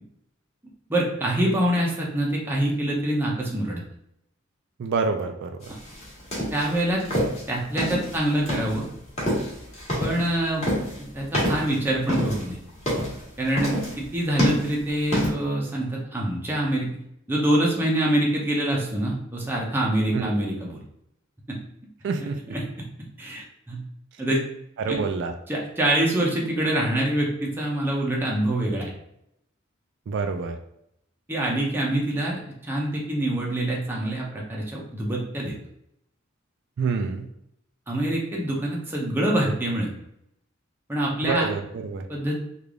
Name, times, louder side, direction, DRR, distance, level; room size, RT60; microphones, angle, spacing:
voice 1, 0.9-3.8 5.7-5.8 6.5-7.0 7.5-8.9 10.0-10.6 11.0-12.6 13.4-16.9 17.3-20.8 21.5-21.6 22.5-22.9 23.2-23.8 24.2-24.4 24.9-25.0 25.5-28.9 31.3-35.6 37.9-39.9 40.9-41.5 42.1-42.4, right 1 dB, 10° right, -3 dB, 0.6 m, -25 dB
voice 2, 4.8-5.7 20.1-20.3 22.0-22.4 24.8-25.3 30.1-30.6 36.8-37.3 41.2-42.1, right 4 dB, 60° right, 6 dB, 0.3 m, -27 dB
sound 1, 5.6-15.3, equal, 30° left, 1.3 m, -27 dB
3.3 x 2.4 x 3.5 m, 0.78 s
head